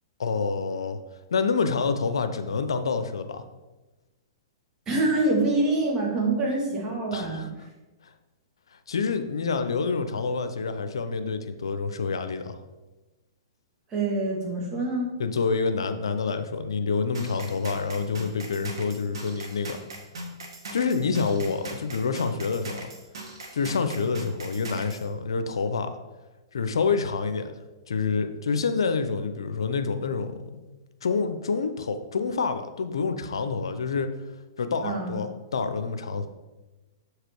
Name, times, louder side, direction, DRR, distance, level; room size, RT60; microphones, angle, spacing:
voice 1, 0.2-1.0 1.3-3.4 7.1-7.5 8.9-12.6 15.2-19.8 20.7-22.9 23.5-25.9 26.5-27.5 27.9-30.4 31.0-34.1 34.6-36.3, left 5 dB, 90° left, 9 dB, 0.6 m, -27 dB
voice 2, 4.9-7.5 13.9-15.1 34.8-35.2, right 2 dB, 25° right, -2 dB, 2.2 m, -25 dB
sound 1, 17.1-25.0, right 1 dB, 80° right, 1.8 m, -40 dB
7.1 x 4.9 x 4.5 m, 1.1 s
hypercardioid pair, 135°, 3 cm